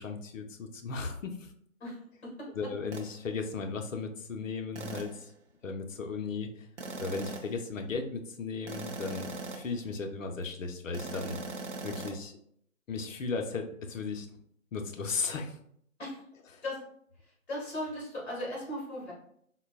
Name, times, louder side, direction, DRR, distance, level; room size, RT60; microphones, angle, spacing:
voice 1, 0.0-1.5 2.5-5.3 5.6-6.7 7.0-11.4 11.8-12.4 12.9-14.3 14.7-15.6 16.5-16.6, left 4 dB, 65° left, 5 dB, 0.6 m, -36 dB
voice 2, 2.2-2.7 16.0-16.2 16.6-16.8 17.5-19.1, left 1 dB, 50° left, -3 dB, 1.3 m, -37 dB
sound 1, 2.9-3.1 4.8-5.2 6.8-7.6 8.7-9.8 10.9-12.2, right 3 dB, 55° right, 0.6 m, -40 dB
3.7 x 2.0 x 2.3 m, 0.68 s
figure-of-eight pair, 155°, 42 cm